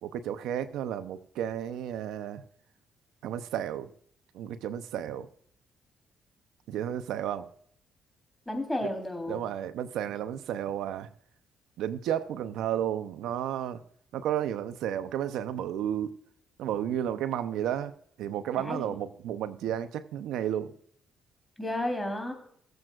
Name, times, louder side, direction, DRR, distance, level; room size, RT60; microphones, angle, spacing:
voice 1, 0.0-2.4 3.2-3.9 4.3-5.3 6.7-7.5 9.3-11.1 11.8-13.8 14.1-16.1 16.6-17.9 18.2-20.7, right 10 dB, 85° right, 0.7 m, -32 dB
voice 2, 8.5-9.4 18.6-18.9 21.6-22.3, left 1 dB, 10° left, 3.6 m, -32 dB
20.5 x 7.8 x 2.4 m
cardioid pair, 90°, 0 cm